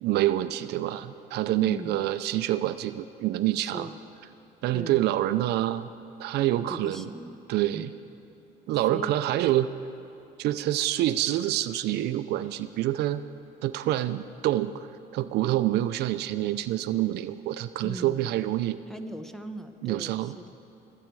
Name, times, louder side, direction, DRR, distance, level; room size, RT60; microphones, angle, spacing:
voice 1, 0.0-3.9 4.6-5.9 6.2-7.1 7.5-7.9 8.7-9.7 10.4-13.2 13.6-14.9 15.1-18.8 19.8-20.4, right 14 dB, 75° right, 12 dB, 0.5 m, -27 dB
voice 2, 3.6-4.0 4.7-5.0 6.7-7.4 7.7-7.9 8.7-9.1 17.8-18.3 18.9-20.5, right 1 dB, ahead, 7 dB, 0.9 m, -39 dB
26.0 x 8.6 x 4.7 m, 3.0 s
cardioid pair, 110°, 17 cm